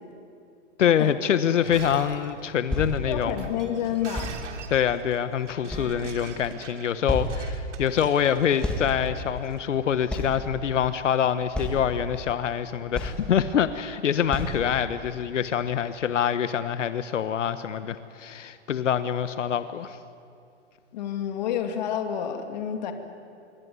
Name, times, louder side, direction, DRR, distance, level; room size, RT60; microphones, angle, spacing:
voice 1, 0.8-3.5 4.7-20.0, left 9 dB, 85° left, 12 dB, 1.3 m, -25 dB
Shatter, 1.5-9.5, right 6 dB, 80° right, 2.9 m, -44 dB
sound 1, 2.7-2.9 4.1-4.4 5.2-5.3 5.7-6.3 6.7-6.8 7.1-7.3 8.6-8.9 9.2-9.3 10.1-10.3 11.0-11.1 11.5-11.9 12.6-12.7 12.9-13.3 13.7-13.8 14.3-14.6 15.2-15.3, left 1 dB, 5° left, 1.7 m, -30 dB
voice 2, 3.1-4.3 5.7-5.8 20.9-22.9, left 9 dB, 35° left, 6 dB, 2.4 m, -29 dB
26.5 x 23.0 x 9.7 m, 2.5 s
hypercardioid pair, 170°, 36 cm